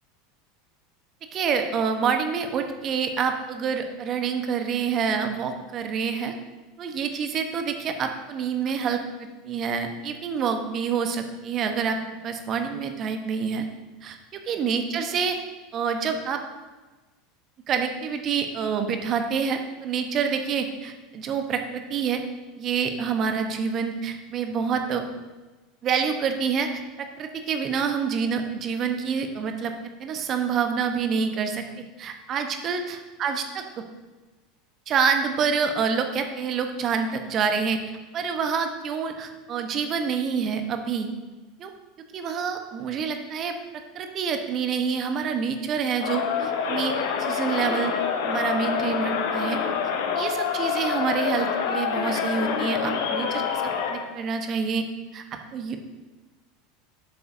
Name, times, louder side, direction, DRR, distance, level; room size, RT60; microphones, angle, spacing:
voice 1, 1.3-6.3 6.8-12.0 12.2-13.6 14.0-15.4 15.7-16.4 17.7-22.2 22.6-25.0 25.8-29.7 30.0-31.6 32.0-33.6 34.9-37.8 38.1-41.1 41.6-41.7 42.1-43.6 43.9-46.9 47.2-47.9 48.2-49.6 50.1-53.6 53.9-54.9 55.1-55.2 55.5-55.8, right 6 dB, 40° right, 6 dB, 1.0 m, -27 dB
Crowd, 46.0-54.1, left 6 dB, 65° left, 0.9 m, -26 dB
10.5 x 6.8 x 2.7 m, 1.2 s
hypercardioid pair, 80°, 0 cm